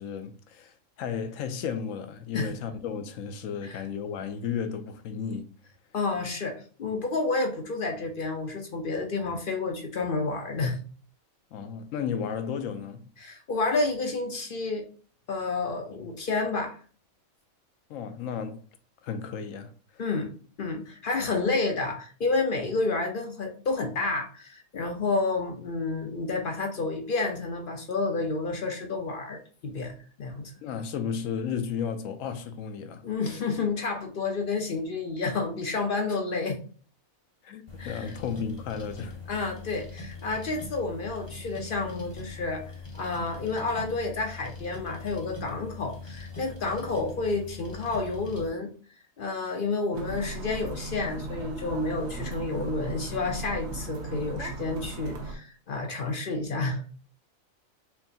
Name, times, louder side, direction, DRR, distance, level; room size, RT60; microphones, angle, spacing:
voice 1, 0.0-5.5 11.5-13.1 17.9-18.7 19.0-20.0 30.6-33.0 37.4-39.2, left 7 dB, 70° left, 1.0 m, -34 dB
voice 2, 5.9-10.8 13.2-14.9 15.3-16.8 20.0-29.9 30.2-30.5 33.0-36.6 37.8-38.1 39.3-42.6 42.9-48.7 49.2-56.8, left 3 dB, 55° left, 0.6 m, -30 dB
sound 1, 37.7-48.5, left 3 dB, 25° left, 0.7 m, -42 dB
sound 2, 49.9-55.4, right 2 dB, 60° right, 1.0 m, -37 dB
4.5 x 3.2 x 2.7 m
omnidirectional pair, 1.5 m